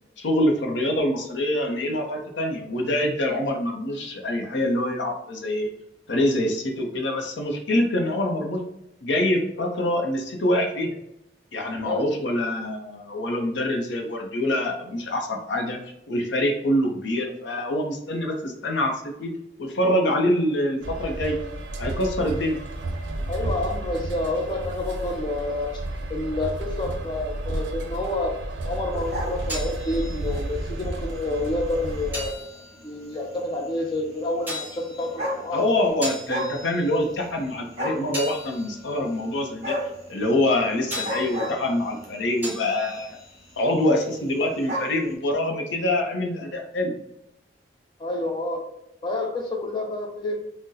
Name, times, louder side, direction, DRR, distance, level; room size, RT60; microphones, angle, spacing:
voice 1, 0.2-5.7 6.1-8.6 9.0-11.0 11.5-15.8 16.1-19.3 19.6-21.4 21.8-22.6 35.5-39.8 40.1-43.2 43.6-46.9, left 1 dB, 85° left, 3 dB, 0.6 m, -25 dB
sound 1, 20.8-32.3, right 2 dB, 85° right, 0.4 m, -32 dB
voice 2, 23.3-25.8 26.1-28.3 28.6-32.5 32.8-35.6 48.0-48.6 49.0-50.4, left 2 dB, 25° left, 2 dB, 0.4 m, -28 dB
sound 2, 28.9-30.1 30.7-30.9 31.7-31.8 32.0-32.1 32.4-32.5 33.7-33.8 34.7-34.8 35.0-35.8 36.1-36.6 36.9-37.5 37.8-38.1 39.6-40.0 40.9-42.1 42.9-43.2 43.5-43.6 43.8-43.9 44.1-45.0, equal, 35° right, 1.0 m, -30 dB
sound 3, 29.2-44.6, equal, 10° right, 1.2 m, -40 dB
3.8 x 2.1 x 2.7 m, 0.82 s
head